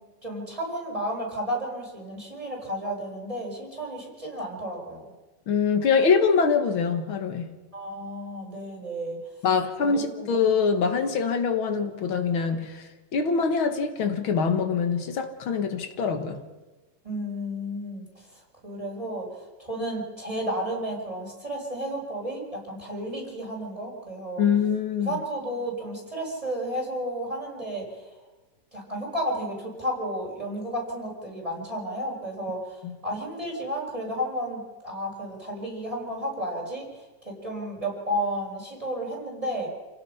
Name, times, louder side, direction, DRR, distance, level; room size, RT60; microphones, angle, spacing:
voice 1, 0.2-5.0 7.7-9.2 9.8-10.2 17.0-18.1 18.6-24.5 25.0-27.9 28.7-36.9 37.2-39.7, equal, 15° right, -2 dB, 5.5 m, -32 dB
voice 2, 5.5-7.6 9.4-16.4 24.4-25.2 32.8-33.0, left 5 dB, 85° left, 7 dB, 2.3 m, -24 dB
28.5 x 17.5 x 5.8 m, 1.2 s
omnidirectional pair, 2.2 m